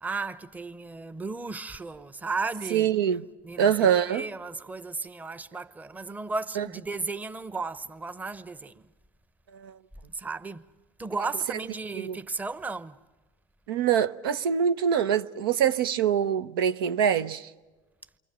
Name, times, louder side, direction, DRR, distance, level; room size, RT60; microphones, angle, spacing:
voice 1, 0.0-2.9 3.4-8.8 10.1-10.7 11.0-13.0, right 3 dB, 15° right, 0.9 m, -35 dB
voice 2, 2.7-3.2 3.6-4.2 6.6-6.7 9.5-9.8 11.9-12.2 13.7-17.5, right 8 dB, 80° right, 0.8 m, -24 dB
29.0 x 24.0 x 6.2 m
hypercardioid pair, 90°, 12 cm